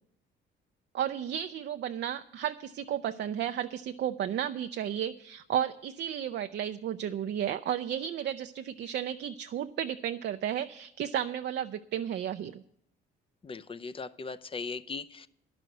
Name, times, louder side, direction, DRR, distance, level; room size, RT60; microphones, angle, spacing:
voice 1, 0.9-12.6, right 10 dB, 60° right, 7 dB, 0.5 m, -33 dB
voice 2, 13.4-15.3, left 4 dB, 25° left, 13 dB, 0.6 m, -39 dB
11.0 x 6.2 x 9.0 m, 0.72 s
cardioid pair, 90°, 20 cm